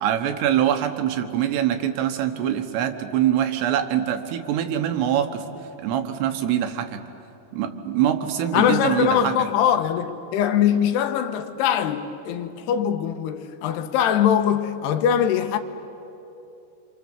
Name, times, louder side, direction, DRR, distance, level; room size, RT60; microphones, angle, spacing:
voice 1, 0.0-5.4 5.8-7.0 7.5-9.5, right 10 dB, 85° right, 3.4 m, -24 dB
voice 2, 8.5-15.6, left 9 dB, 90° left, 3.0 m, -22 dB
26.5 x 26.5 x 7.4 m
omnidirectional pair, 4.7 m